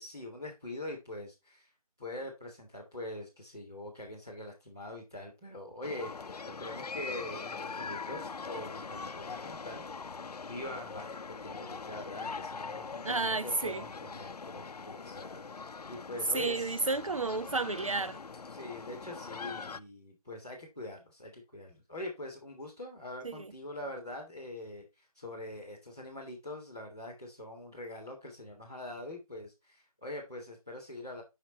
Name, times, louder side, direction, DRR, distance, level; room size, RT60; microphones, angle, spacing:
voice 1, 0.0-1.7 2.0-10.2 10.5-15.5 15.8-16.9 18.5-31.2, left 1 dB, 5° right, 0.7 m, -43 dB
sound 1, 5.8-19.8, left 4 dB, 90° left, 0.6 m, -42 dB
voice 2, 13.0-13.8 16.3-18.2 23.2-23.4, right 3 dB, 60° right, 0.4 m, -31 dB
7.4 x 5.7 x 2.8 m
figure-of-eight pair, 175°, 20 cm